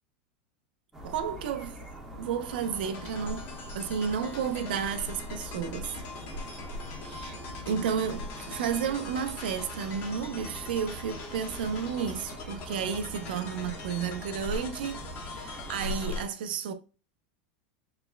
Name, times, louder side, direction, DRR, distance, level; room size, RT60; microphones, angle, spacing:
sound 1, 0.9-16.2, equal, 5° right, 1.2 m, -41 dB
voice 1, 1.0-1.8 2.1-3.5 3.7-5.9 7.1-7.3 7.7-16.7, right 7 dB, 80° right, 0.7 m, -32 dB
sound 2, 2.5-16.2, left 5 dB, 45° left, 1.1 m, -44 dB
6.8 x 3.3 x 2.2 m
supercardioid pair, 140°, 5 cm